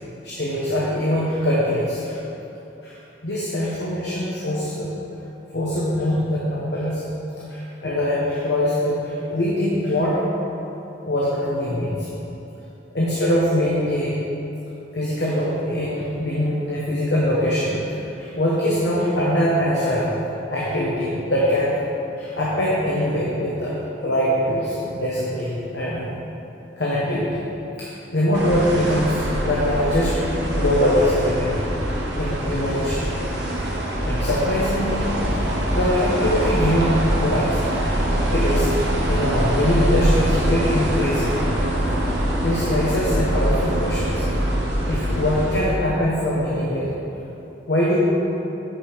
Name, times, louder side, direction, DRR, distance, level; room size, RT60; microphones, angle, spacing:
voice 1, 0.2-2.2 2.8-3.0 3.2-4.9 5.5-7.1 7.5-10.2 11.0-12.1 12.9-14.2 14.9-20.2 20.5-21.8 22.2-23.7 24.0-26.1 26.8-27.4 27.8-30.2 30.5-31.6 32.2-33.0 34.0-35.1 35.4-35.5 35.7-37.6 38.3-38.7 39.1-41.3 42.4-44.2 44.8-46.9 47.7-48.0, left 1 dB, 65° left, -6 dB, 1.1 m, -22 dB
sound 1, 28.3-45.6, equal, 70° right, 1.2 m, -23 dB
8.8 x 5.2 x 5.2 m, 3.0 s
head